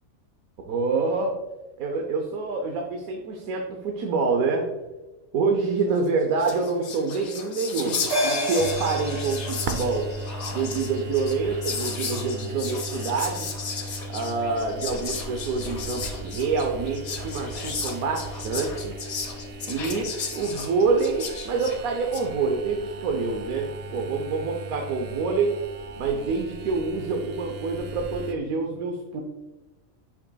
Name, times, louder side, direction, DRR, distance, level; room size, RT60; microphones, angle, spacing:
voice 1, 0.7-1.3 1.8-4.7 5.3-10.1 10.5-13.5 14.1-18.9 19.7-25.5 26.0-29.2, right 4 dB, 85° right, 2 dB, 1.2 m, -26 dB
Whispering, 6.1-6.2 6.3-22.3, left 5 dB, 90° left, 1.5 m, -35 dB
sound 1, 8.1-12.8 13.1-13.2, equal, 45° left, 1.9 m, -32 dB
sound 2, 8.6-28.3, right 2 dB, 60° right, 0.7 m, -37 dB
8.0 x 5.7 x 2.2 m, 1.1 s
omnidirectional pair, 1.4 m